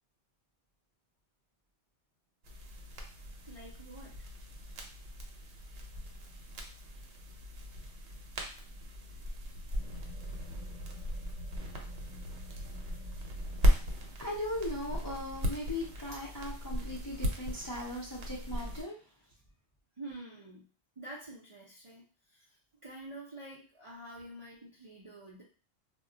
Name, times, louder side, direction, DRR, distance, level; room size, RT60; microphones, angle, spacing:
sound 1, 2.4-18.8, equal, 75° right, 0.9 m, -36 dB
voice 1, 3.5-4.2 20.0-20.7 21.0-22.6 22.8-25.4, right 1 dB, 40° right, -6 dB, 0.4 m, -47 dB
voice 2, 14.2-19.0, left 1 dB, 30° left, -5 dB, 0.4 m, -38 dB
2.2 x 2.1 x 3.7 m, 0.37 s
omnidirectional pair, 1.2 m